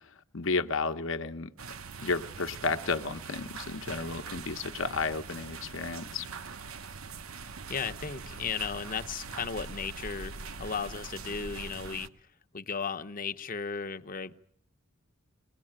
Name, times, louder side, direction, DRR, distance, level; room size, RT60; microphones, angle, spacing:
voice 1, 0.3-1.5 2.0-6.3, left 4 dB, 65° left, 8 dB, 1.0 m, -32 dB
sound 1, 1.6-12.1, right 4 dB, 90° right, 1.0 m, -43 dB
voice 2, 7.7-12.1 12.5-14.3, left 5 dB, 40° left, 9 dB, 0.9 m, -35 dB
22.5 x 19.0 x 8.8 m, 0.64 s
head